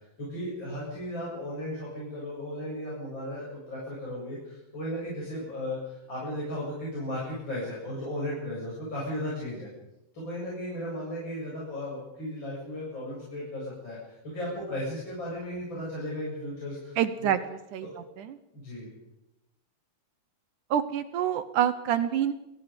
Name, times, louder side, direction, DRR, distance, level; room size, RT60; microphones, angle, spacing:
voice 1, 0.2-9.7 10.1-17.4 17.8-17.9 18.5-18.9, left 1 dB, 30° left, -6 dB, 8.3 m, -35 dB
voice 2, 17.0-18.4 20.7-22.3, right 10 dB, 70° right, 12 dB, 2.1 m, -27 dB
27.5 x 21.5 x 5.2 m, 0.95 s
omnidirectional pair, 4.4 m